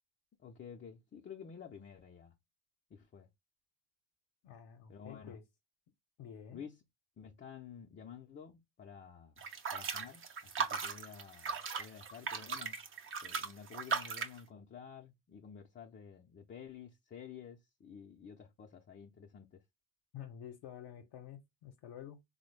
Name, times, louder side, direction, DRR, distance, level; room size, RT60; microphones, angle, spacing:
voice 1, 0.4-2.4 2.9-3.3 4.9-5.4 6.5-6.8 7.2-9.4 9.7-12.8 13.2-19.6, left 7 dB, 25° left, 0.5 m, -51 dB
voice 2, 4.4-5.4 6.2-6.6 20.1-22.2, left 9 dB, 55° left, 0.7 m, -49 dB
sound 1, 9.4-14.4, right 5 dB, 25° right, 0.5 m, -38 dB
3.5 x 2.1 x 3.2 m
hypercardioid pair, 70°, 49 cm